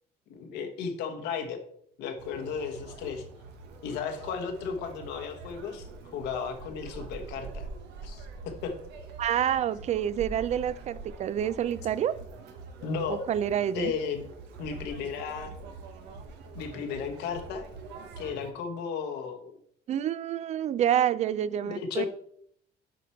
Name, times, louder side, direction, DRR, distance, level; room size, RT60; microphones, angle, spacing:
voice 1, 0.3-1.6 2.0-3.3 3.8-5.8 6.1-7.7 8.0-8.3 8.6-8.7 12.8-13.2 13.7-14.3 14.6-15.5 16.5-17.6 18.2-19.5 21.6-22.1, left 6 dB, 85° left, 1.3 m, -34 dB
Conversation, 2.2-18.5, right 4 dB, 85° right, 1.1 m, -44 dB
voice 2, 9.2-12.2 13.1-13.9 19.9-22.1, right 10 dB, 40° right, 0.4 m, -28 dB
7.7 x 5.1 x 4.4 m
cardioid pair, 110°, 17 cm